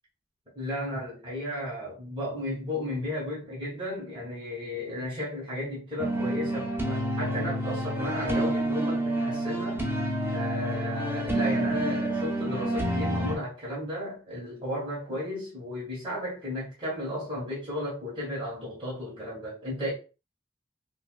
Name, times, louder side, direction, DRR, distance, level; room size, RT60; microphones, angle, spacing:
voice 1, 0.5-9.8 10.3-19.9, left 1 dB, 30° right, 1.5 m, -34 dB
sound 1, 6.0-13.3, right 1 dB, 15° right, 0.7 m, -28 dB
5.6 x 2.0 x 2.3 m
head